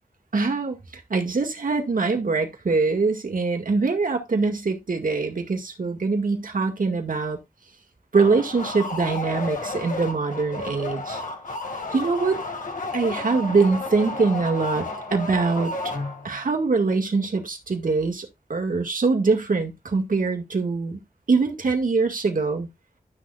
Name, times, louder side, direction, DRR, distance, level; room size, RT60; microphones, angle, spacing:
voice 1, 0.3-7.4 8.1-11.2 11.9-12.4 12.9-15.7 16.2-21.0 21.3-22.7, right 4 dB, 70° right, 1.9 m, -23 dB
sound 1, 8.1-16.5, left 2 dB, 65° left, 2.0 m, -32 dB
12.0 x 6.5 x 2.4 m
wide cardioid pair, 70°, 15 cm